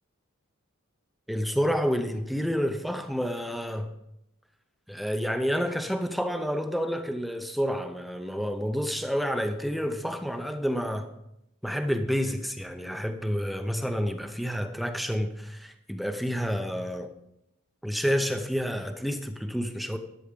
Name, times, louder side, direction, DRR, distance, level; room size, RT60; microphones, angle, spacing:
voice 1, 1.3-3.9 4.9-11.1 11.6-17.1 17.8-20.0, equal, ahead, 0.6 m, -29 dB
11.5 x 6.9 x 5.2 m
head